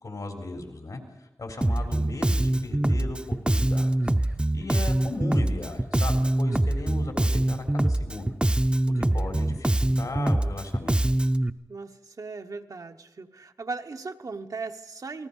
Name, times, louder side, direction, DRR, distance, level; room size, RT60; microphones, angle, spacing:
voice 1, 0.0-4.1 4.5-8.3 9.0-9.7 10.0-11.0, left 2 dB, 80° left, 3.7 m, -37 dB
Bass guitar, 1.6-11.5, right 1 dB, 15° right, 0.6 m, -24 dB
voice 2, 11.7-15.3, right 4 dB, 70° right, 1.1 m, -37 dB
28.5 x 19.0 x 5.5 m
wide cardioid pair, 90°, 6 cm